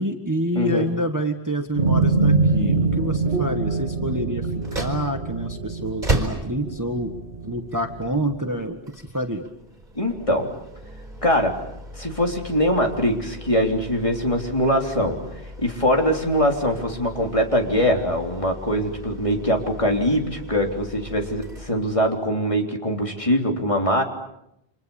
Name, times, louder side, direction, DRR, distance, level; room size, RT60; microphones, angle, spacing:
voice 1, 0.0-7.1 7.4-8.8 9.1-9.4, right 1 dB, 15° right, 5 dB, 1.6 m, -27 dB
voice 2, 0.6-0.9 10.0-10.5 11.2-11.5 12.0-15.2 15.6-24.0, equal, 30° left, 2 dB, 3.6 m, -22 dB
sound 1, 1.8-8.3, right 3 dB, 80° right, 2.5 m, -24 dB
sound 2, 4.5-22.3, right 1 dB, 40° right, 4.5 m, -36 dB
30.0 x 27.0 x 7.2 m, 0.83 s
omnidirectional pair, 1.1 m